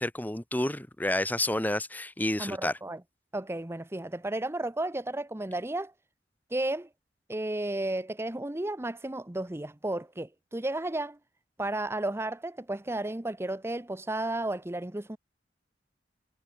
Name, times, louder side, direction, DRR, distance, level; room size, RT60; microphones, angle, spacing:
voice 1, 0.0-2.8, left 1 dB, 10° left, 1.2 m, -30 dB
voice 2, 2.4-3.0 3.3-5.9 6.5-6.9 7.3-11.2 11.6-15.2, right 1 dB, 15° right, 0.8 m, -33 dB
head